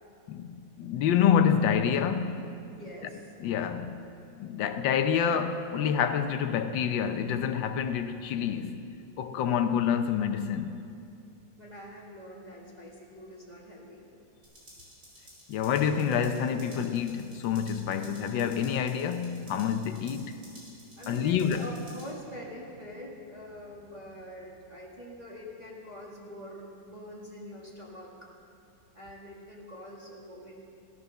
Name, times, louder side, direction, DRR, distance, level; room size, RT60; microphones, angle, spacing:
voice 1, 0.3-2.4 3.4-3.9 4.4-8.8 9.2-10.8 15.5-20.4 21.1-21.7, left 8 dB, 85° left, 1.5 m, -27 dB
voice 2, 2.7-3.3 11.6-14.0 21.0-28.3 28.9-30.6, equal, 20° right, 2.0 m, -45 dB
sound 1, 14.4-22.1, right 1 dB, 85° right, 5.1 m, -53 dB
16.0 x 13.0 x 6.6 m
omnidirectional pair, 2.0 m